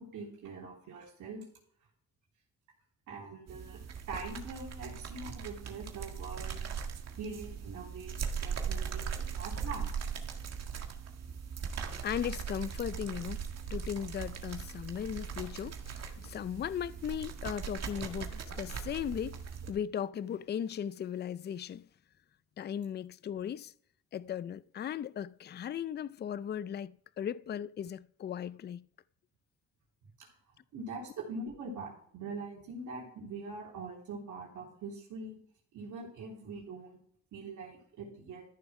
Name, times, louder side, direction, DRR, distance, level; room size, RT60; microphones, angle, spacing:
voice 1, 0.0-1.4 3.1-6.7 7.2-9.9 30.2-30.3 30.7-35.4 35.7-37.0 37.3-38.4, right 3 dB, 80° right, 3.3 m, -43 dB
sound 1, 3.5-19.7, right 6 dB, 55° right, 1.8 m, -39 dB
voice 2, 12.0-13.4 13.7-19.4 19.7-21.9 22.6-23.7 24.1-28.9, left 9 dB, 35° left, 0.4 m, -37 dB
13.5 x 6.9 x 5.9 m
cardioid pair, 90°, 30 cm